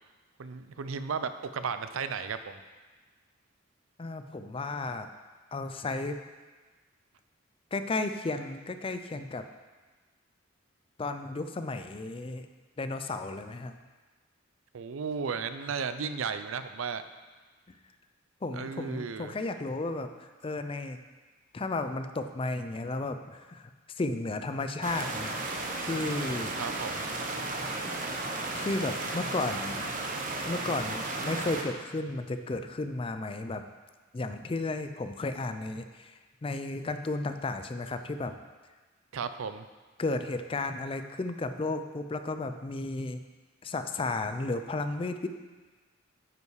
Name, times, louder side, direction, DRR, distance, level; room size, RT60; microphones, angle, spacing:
voice 1, 0.4-2.6 14.7-17.0 18.5-19.3 26.6-27.1 39.1-39.7, right 5 dB, 90° right, 11 dB, 0.5 m, -34 dB
voice 2, 4.0-5.1 5.5-6.2 7.7-9.4 11.0-12.5 12.8-13.7 18.4-21.0 21.5-25.3 25.8-26.6 28.5-29.9 30.5-33.7 34.1-38.4 40.0-43.2 43.6-45.3, left 2 dB, 25° left, 8 dB, 0.4 m, -33 dB
sound 1, 24.8-31.6, right 2 dB, 40° right, 0.9 m, -34 dB
9.3 x 5.4 x 4.8 m, 1.3 s
head